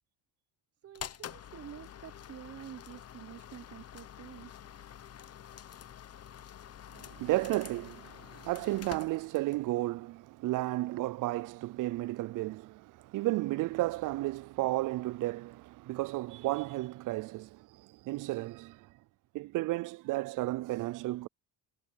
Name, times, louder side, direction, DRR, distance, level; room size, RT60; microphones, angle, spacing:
voice 1, 0.8-4.5, right 10 dB, 40° right, 0.8 m, -48 dB
sound 1, 0.9-9.7, left 10 dB, 40° left, 1.1 m, -48 dB
voice 2, 6.9-18.9 19.3-21.3, right 18 dB, 55° right, 0.5 m, -33 dB
supercardioid pair, 90°, 39 cm